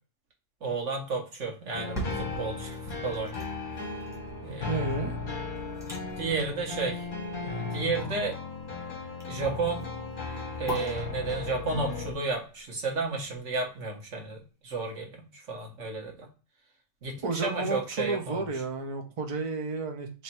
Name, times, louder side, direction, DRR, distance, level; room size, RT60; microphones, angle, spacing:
voice 1, 0.6-3.5 4.4-4.8 6.1-7.1 7.4-8.4 9.3-9.9 10.6-16.3 17.0-18.5, right 3 dB, 80° right, 1 dB, 1.5 m, -32 dB
sound 1, 1.7-12.1, left 4 dB, 45° left, 1.0 m, -36 dB
sound 2, 1.7-13.7 14.1-14.2, right 1 dB, 5° right, 1.2 m, -43 dB
voice 2, 4.7-5.1 17.2-20.2, right 3 dB, 35° right, 4 dB, 0.6 m, -32 dB
3.2 x 3.1 x 4.3 m, 0.35 s
omnidirectional pair, 1.2 m